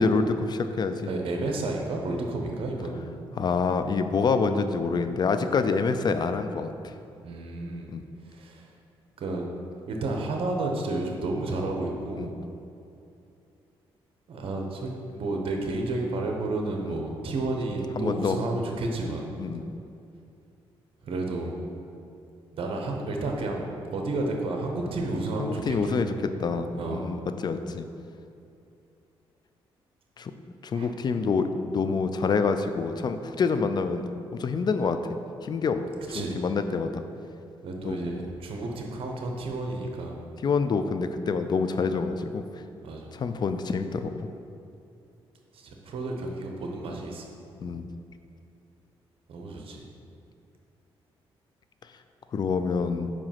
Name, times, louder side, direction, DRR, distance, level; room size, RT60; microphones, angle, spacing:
voice 1, 0.0-1.1 3.4-6.7 7.9-8.0 12.2-12.3 16.9-17.0 18.0-18.4 19.4-19.6 25.4-27.9 30.2-30.3 30.6-34.0 34.3-35.0 35.4-35.8 36.1-37.0 37.8-38.1 40.1-42.4 43.1-44.2 47.6-47.9 52.3-53.1, left 5 dB, 45° left, 9 dB, 0.5 m, -27 dB
voice 2, 1.1-3.0 7.2-7.9 8.3-8.6 9.2-9.5 9.9-12.4 14.3-19.3 21.0-21.6 22.5-26.1 26.7-27.1 30.7-30.9 36.1-36.4 37.6-40.2 42.8-43.1 45.5-47.3 49.3-49.9, right 2 dB, 65° right, 1 dB, 1.0 m, -31 dB
5.1 x 4.9 x 5.8 m, 2.6 s
cardioid pair, 75°, 10 cm